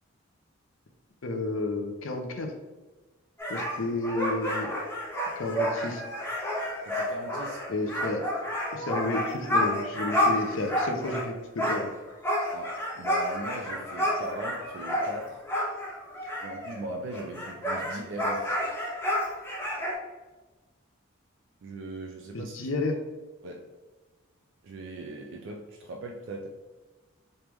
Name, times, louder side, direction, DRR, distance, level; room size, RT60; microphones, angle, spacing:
voice 1, 1.2-2.5 3.5-4.7 5.4-6.0 7.7-8.2 8.7-11.9 22.3-23.0, left 2 dB, 70° left, 4 dB, 0.6 m, -31 dB
sound 1, 3.4-11.3 11.6-16.8 17.1-19.9, equal, 10° left, 0.7 m, -30 dB
voice 2, 6.8-7.7 12.5-15.4 16.4-18.5 21.6-22.6 23.4-23.7 24.6-26.5, right 1 dB, 60° right, 1 dB, 0.4 m, -39 dB
3.4 x 3.2 x 3.0 m, 1.2 s
head